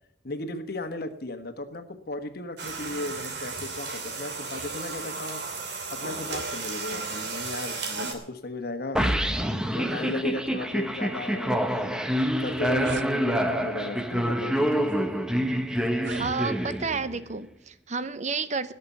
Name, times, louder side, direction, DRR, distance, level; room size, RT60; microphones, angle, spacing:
voice 1, 0.2-5.4 5.9-9.0 9.7-12.0 12.4-14.9, left 2 dB, 60° left, 9 dB, 1.3 m, -35 dB
sound 1, 2.6-8.1, right 4 dB, 75° right, 2.7 m, -34 dB
sound 2, 9.0-17.2, equal, 5° right, 0.9 m, -27 dB
sound 3, 12.4-13.1 14.0-14.2 14.9-15.0 15.9-16.8, right 5 dB, 90° right, 0.6 m, -39 dB
voice 2, 16.2-18.7, right 4 dB, 40° right, 13 dB, 0.7 m, -31 dB
17.0 x 6.8 x 8.2 m, 0.75 s
head